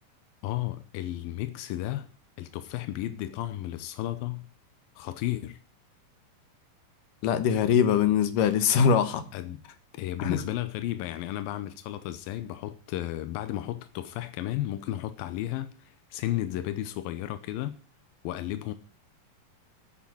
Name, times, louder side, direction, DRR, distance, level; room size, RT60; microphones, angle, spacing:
voice 1, 0.4-2.1 2.4-4.5 5.0-5.6 9.3-9.6 9.9-17.8 18.2-18.7, left 14 dB, 90° left, 2.6 m, -33 dB
voice 2, 7.2-9.2 10.2-10.4, left 7 dB, 70° left, 2.8 m, -22 dB
10.0 x 8.7 x 9.5 m
omnidirectional pair, 4.0 m